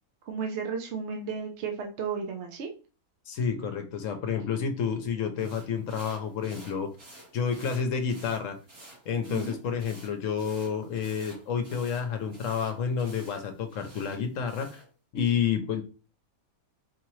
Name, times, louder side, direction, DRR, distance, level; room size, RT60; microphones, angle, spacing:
voice 1, 0.2-2.7 9.3-9.6, right 6 dB, 60° right, 3 dB, 0.8 m, -33 dB
voice 2, 3.3-6.9 7.3-8.6 9.1-14.7 15.1-15.8, left 7 dB, 70° left, 6 dB, 1.0 m, -30 dB
Hair brushing, 5.4-14.9, right 1 dB, 80° right, 2.5 m, -51 dB
4.6 x 2.9 x 3.0 m, 0.35 s
omnidirectional pair, 1.5 m